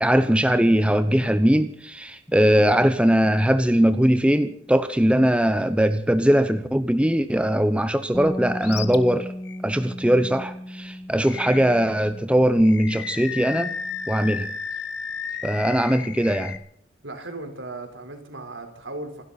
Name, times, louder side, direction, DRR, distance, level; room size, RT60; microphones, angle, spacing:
voice 1, 0.0-9.3 9.6-13.7 14.1-14.5 15.4-16.6, equal, 5° right, 10 dB, 0.9 m, -20 dB
Bass guitar, 8.1-14.4, equal, 15° left, 1.2 m, -37 dB
Animal, 8.6-9.0 9.4-9.6 11.2-11.9 12.6-16.6, left 6 dB, 60° left, 1.3 m, -33 dB
voice 2, 17.0-19.2, right 2 dB, 75° right, 5 dB, 4.3 m, -36 dB
27.5 x 12.5 x 4.2 m, 0.63 s
head